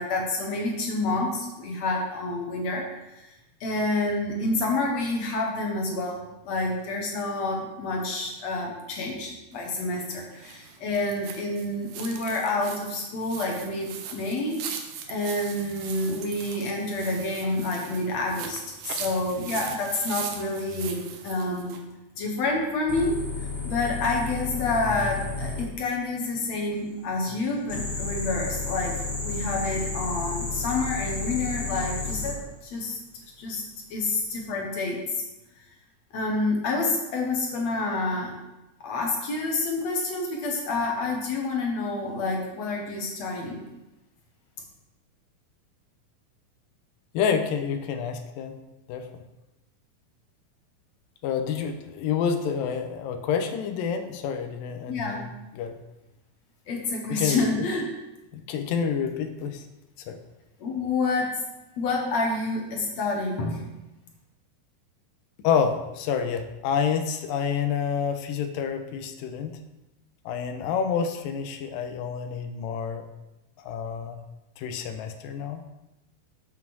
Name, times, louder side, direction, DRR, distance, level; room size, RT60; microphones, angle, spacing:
voice 1, 0.0-3.3 3.6-14.6 15.1-21.8 22.2-23.2 23.6-33.0 33.4-33.6 33.9-35.0 36.1-38.3 38.8-43.6 54.9-55.2 56.7-57.9 60.6-61.4 61.8-63.6, left 2 dB, 60° left, 0 dB, 2.0 m, -28 dB
sound 1, 9.5-21.8, right 7 dB, 75° right, 2.4 m, -40 dB
sound 2, 22.9-25.6 27.7-32.3 34.0-34.3, left 4 dB, 30° left, 2.1 m, -32 dB
voice 2, 47.1-48.6 48.9-49.1 51.2-55.3 55.6-55.8 57.1-57.7 58.3-59.6 60.1-60.2 65.4-69.6 70.3-73.1 73.7-74.2 74.6-75.6, left 7 dB, 80° left, 7 dB, 2.4 m, -28 dB
7.3 x 5.7 x 6.1 m, 0.99 s
omnidirectional pair, 4.1 m